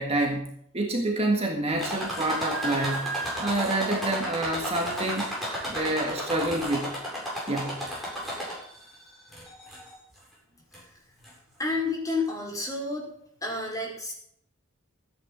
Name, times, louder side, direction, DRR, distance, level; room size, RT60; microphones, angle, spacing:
voice 1, 0.0-3.1 3.4-5.3 5.7-7.0 7.5-7.8, right 2 dB, 30° right, 1 dB, 1.7 m, -28 dB
sound 1, 1.8-8.8 9.3-9.9 10.7-10.8 11.2-11.3, right 1 dB, ahead, 7.7 m, -33 dB
voice 2, 11.6-13.1 13.4-14.1, left 3 dB, 15° left, -3 dB, 5.3 m, -30 dB
14.0 x 10.0 x 6.2 m, 0.68 s
head